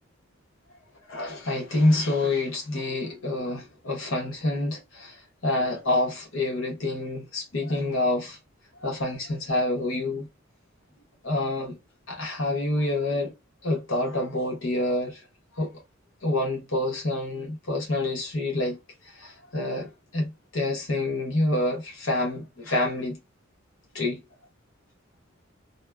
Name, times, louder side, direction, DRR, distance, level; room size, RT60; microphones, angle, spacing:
voice 1, 1.1-8.4 8.8-10.3 11.2-11.8 12.1-13.3 13.6-15.2 15.6-15.8 16.2-18.8 19.0-23.2 23.9-24.2, left 2 dB, 75° left, 1.0 m, -27 dB
2.8 x 2.1 x 2.2 m
head